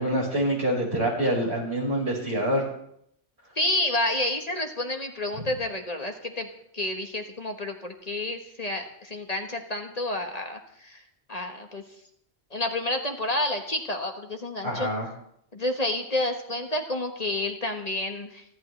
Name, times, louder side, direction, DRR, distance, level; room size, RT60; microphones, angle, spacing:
voice 1, 0.0-2.6 14.6-15.1, right 1 dB, 75° right, -3 dB, 5.7 m, -26 dB
voice 2, 3.5-6.5 6.7-11.0 11.3-11.8 12.5-14.9 15.5-18.4, left 1 dB, 35° left, 4 dB, 1.5 m, -29 dB
29.0 x 11.5 x 3.3 m, 0.71 s
omnidirectional pair, 1.1 m